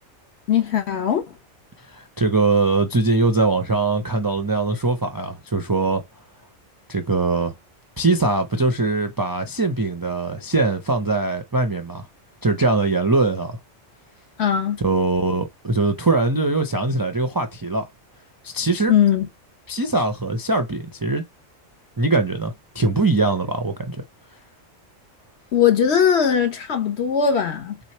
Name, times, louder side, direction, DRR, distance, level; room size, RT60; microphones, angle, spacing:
voice 1, 0.5-1.3 14.4-14.8 18.9-19.3 25.5-27.8, left 8 dB, 60° left, 1.3 m, -19 dB
voice 2, 1.9-6.0 6.9-7.5 8.0-12.1 12.4-13.6 14.8-17.9 18.4-18.9 19.7-21.2 22.0-24.0, right 3 dB, 30° right, 0.4 m, -21 dB
3.7 x 3.1 x 4.2 m
omnidirectional pair, 1.3 m